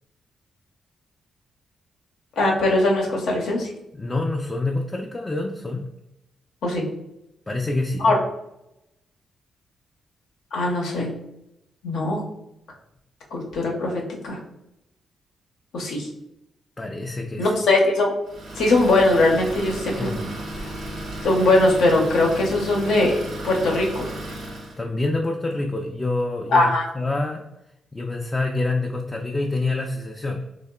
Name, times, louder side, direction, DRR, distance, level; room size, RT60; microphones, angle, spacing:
voice 1, 2.4-3.7 6.6-6.8 8.0-8.2 10.5-11.1 11.8-12.2 13.3-14.4 15.7-16.1 17.4-18.1 18.6-20.1 20.6-20.7 21.2-24.1 26.5-26.8, left 2 dB, 80° left, -1 dB, 0.6 m, -20 dB
voice 2, 3.9-5.8 7.5-8.2 16.8-17.5 20.0-20.2 24.8-27.4 27.9-30.5, left 2 dB, 25° left, 1 dB, 0.3 m, -27 dB
Idling, 18.3-24.8, right 1 dB, 80° right, 0.7 m, -34 dB
2.9 x 2.0 x 2.2 m, 0.85 s
supercardioid pair, 55°, 0 cm